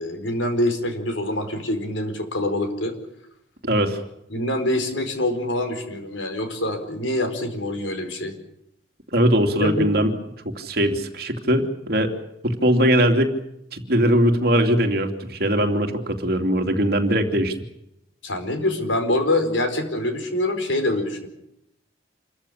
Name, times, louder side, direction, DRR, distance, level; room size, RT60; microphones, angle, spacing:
voice 1, 0.0-2.9 4.3-8.4 9.6-9.9 18.2-21.3, left 1 dB, 80° left, 7 dB, 4.7 m, -25 dB
voice 2, 3.6-4.0 9.1-10.1 10.6-12.1 12.4-13.4 13.7-17.5, equal, 50° right, 5 dB, 2.8 m, -20 dB
27.5 x 14.5 x 10.0 m, 0.80 s
head